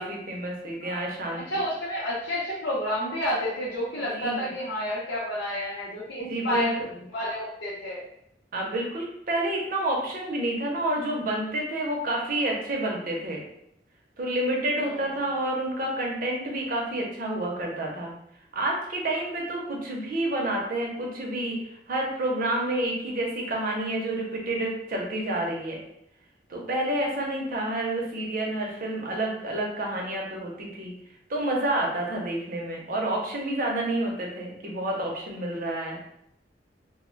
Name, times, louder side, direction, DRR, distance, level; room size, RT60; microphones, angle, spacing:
voice 1, 0.0-1.4 4.1-4.5 6.3-6.7 8.5-13.4 14.2-18.1 18.5-25.8 26.5-30.9 31.3-36.0, right 1 dB, 50° right, -1 dB, 0.6 m, -29 dB
voice 2, 1.3-6.8 7.1-8.0 14.8-14.9, left 1 dB, 80° left, -7 dB, 0.7 m, -30 dB
2.1 x 2.0 x 3.7 m, 0.76 s
head